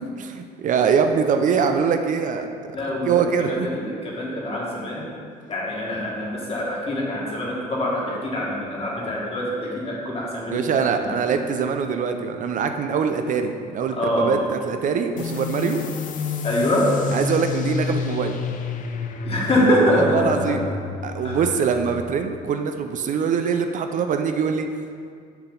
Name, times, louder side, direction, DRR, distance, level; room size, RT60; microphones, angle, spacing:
voice 1, 0.0-2.5 3.0-3.7 10.5-15.8 17.1-18.4 19.9-20.7 21.0-24.7, right 6 dB, 50° right, 6 dB, 0.4 m, -23 dB
voice 2, 2.7-5.1 5.5-11.1 13.9-14.4 16.4-17.0 19.3-20.6 21.2-21.5, left 1 dB, 35° left, -3 dB, 1.7 m, -24 dB
sound 1, 15.2-22.4, left 5 dB, 50° left, 0.5 m, -30 dB
7.0 x 5.7 x 3.9 m, 2.2 s
cardioid pair, 110°, 17 cm